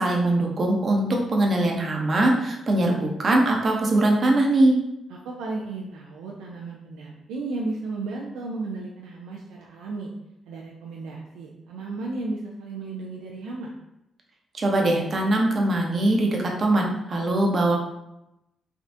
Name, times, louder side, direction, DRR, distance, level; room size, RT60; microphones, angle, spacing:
voice 1, 0.0-4.8 14.5-17.8, right 1 dB, 50° right, 0 dB, 0.7 m, -21 dB
voice 2, 5.1-10.1 10.5-13.7, right 3 dB, 85° right, -2 dB, 0.3 m, -34 dB
3.4 x 2.3 x 2.6 m, 0.87 s
supercardioid pair, 50°, 0 cm